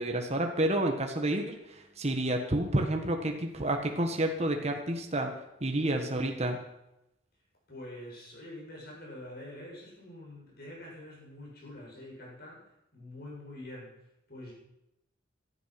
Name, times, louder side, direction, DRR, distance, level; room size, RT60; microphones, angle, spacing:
voice 1, 0.0-5.3 5.6-6.6, right 1 dB, 35° right, 3 dB, 1.5 m, -30 dB
voice 2, 7.7-12.6 12.9-13.9 14.3-14.5, left 1 dB, 50° left, -2 dB, 7.4 m, -45 dB
18.0 x 12.5 x 6.0 m, 0.86 s
head